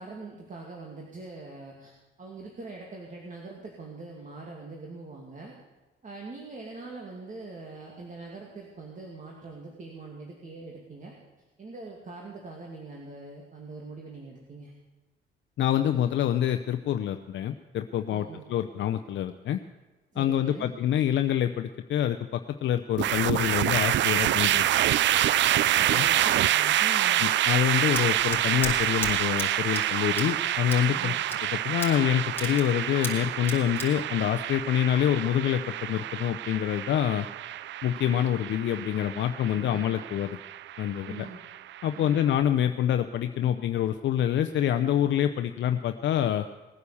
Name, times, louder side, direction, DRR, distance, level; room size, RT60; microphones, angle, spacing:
voice 1, 0.0-5.5 6.0-11.2 11.6-14.7 18.1-18.5 20.1-20.7 25.8-27.2 30.9-31.2 39.5-40.1 41.0-41.4 41.9-42.2, right 3 dB, 40° right, -1 dB, 2.6 m, -43 dB
voice 2, 15.6-19.6 20.2-24.7 25.8-26.0 27.2-31.1 31.6-37.3 37.8-40.4 40.8-41.3 41.8-46.5, left 10 dB, 70° left, 8 dB, 0.7 m, -26 dB
sound 1, 23.0-42.2, right 13 dB, 65° right, 0.5 m, -27 dB
Scissors, 27.4-35.2, left 3 dB, 10° left, 3.7 m, -39 dB
19.0 x 9.5 x 7.1 m, 1.1 s
cardioid pair, 90°, 20 cm